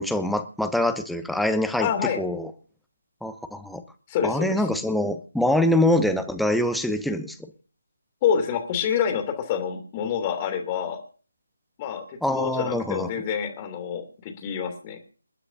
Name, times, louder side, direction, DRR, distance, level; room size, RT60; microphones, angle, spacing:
voice 1, 0.0-1.9 2.2-2.5 3.2-3.8 4.2-7.4 12.2-13.1, left 1 dB, ahead, 8 dB, 0.8 m, -24 dB
voice 2, 1.8-2.2 4.1-4.6 8.2-11.0 11.8-15.0, left 8 dB, 20° left, 5 dB, 2.7 m, -27 dB
28.5 x 9.8 x 2.7 m, 0.40 s
figure-of-eight pair, 150°, 0 cm